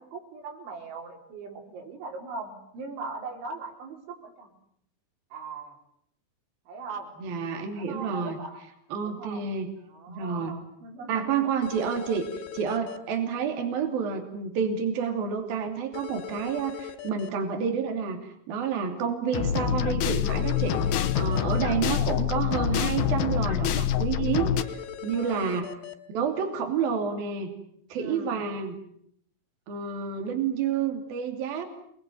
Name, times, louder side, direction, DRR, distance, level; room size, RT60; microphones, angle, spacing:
voice 1, 0.0-4.5 5.3-5.7 6.7-7.1 7.7-8.6 9.0-9.4 9.9-11.3 21.7-22.2 22.4-22.8 25.1-25.6 28.0-28.4, right 3 dB, 85° right, 2 dB, 6.8 m, -40 dB
voice 2, 7.2-8.4 8.9-9.7 10.1-10.6 11.1-12.3 12.5-25.7 26.1-27.5 27.9-28.8 29.7-31.6, right 6 dB, 55° right, 4 dB, 4.5 m, -29 dB
sound 1, 11.6-13.0 15.9-17.3 20.3-21.6 24.6-25.9, left 9 dB, 85° left, 4.5 m, -40 dB
sound 2, 19.3-24.6, left 9 dB, 65° left, 2.8 m, -26 dB
28.0 x 21.5 x 9.4 m, 0.70 s
omnidirectional pair, 5.2 m